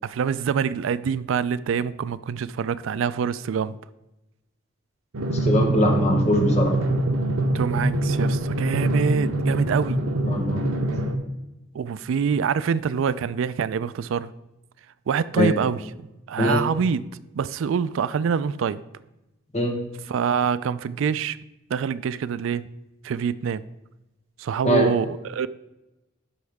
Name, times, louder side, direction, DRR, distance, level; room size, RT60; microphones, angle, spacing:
voice 1, 0.0-3.7 7.5-10.0 11.7-14.3 15.1-15.8 16.3-17.0 17.3-18.8 20.1-21.4 21.7-22.6 23.0-23.6 24.4-25.5, right 6 dB, 70° right, 0.3 m, -25 dB
Drum, 5.1-11.2, right 1 dB, 90° right, 0.9 m, -24 dB
voice 2, 5.4-6.7 10.2-10.6 15.4-15.5 16.4-16.6 19.5-19.8 24.6-24.9, left 1 dB, 30° left, 1.2 m, -21 dB
11.5 x 4.7 x 3.5 m
head